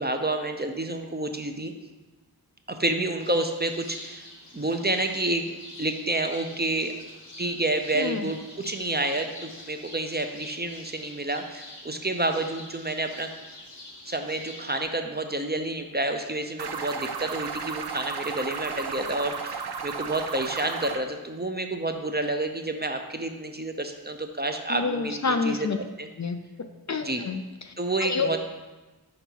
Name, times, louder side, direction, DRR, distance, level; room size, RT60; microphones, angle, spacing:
voice 1, 0.0-1.7 2.7-4.3 4.5-5.4 5.8-6.9 7.4-13.3 14.1-25.7 26.0-26.1 27.0-27.2 27.8-28.4, right 2 dB, 25° right, 5 dB, 0.6 m, -29 dB
sound 1, 3.2-14.8, left 2 dB, 90° left, 1.2 m, -46 dB
voice 2, 7.9-8.3 24.7-25.8 26.2-27.7 28.0-28.4, left 4 dB, 45° left, 7 dB, 0.4 m, -29 dB
sound 2, 16.6-21.0, right 6 dB, 70° right, 0.6 m, -34 dB
5.3 x 4.9 x 4.5 m, 1.2 s
wide cardioid pair, 45°, 41 cm